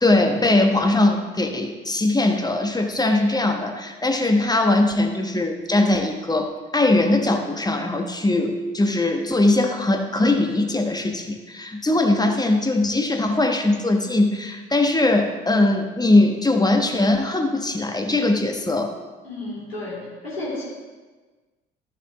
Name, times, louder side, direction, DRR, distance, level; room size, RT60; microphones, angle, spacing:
voice 1, 0.0-18.9, left 2 dB, 15° left, 4 dB, 1.3 m, -20 dB
voice 2, 19.2-20.6, left 2 dB, 90° left, -8 dB, 2.9 m, -32 dB
13.5 x 6.8 x 3.2 m, 1.3 s
figure-of-eight pair, 50°, 29 cm